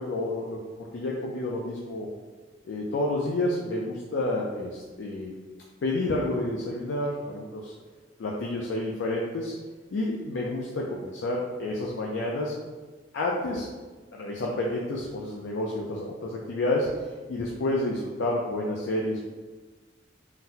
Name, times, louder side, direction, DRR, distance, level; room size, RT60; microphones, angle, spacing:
voice 1, 0.0-2.1 2.6-5.3 5.8-7.7 8.2-9.5 9.9-12.5 13.1-13.7 14.1-16.9 17.3-19.2, left 1 dB, 70° left, -2 dB, 0.4 m, -29 dB
3.9 x 2.1 x 2.7 m, 1.3 s
head